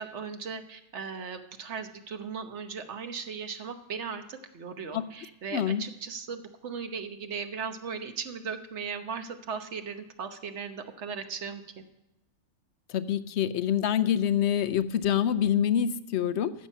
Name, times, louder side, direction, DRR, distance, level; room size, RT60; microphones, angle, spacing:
voice 1, 0.0-11.6, right 5 dB, 60° right, 8 dB, 1.2 m, -37 dB
voice 2, 5.5-5.8 12.9-16.5, left 9 dB, 65° left, 14 dB, 0.8 m, -26 dB
13.5 x 7.4 x 5.4 m, 0.95 s
omnidirectional pair, 1.3 m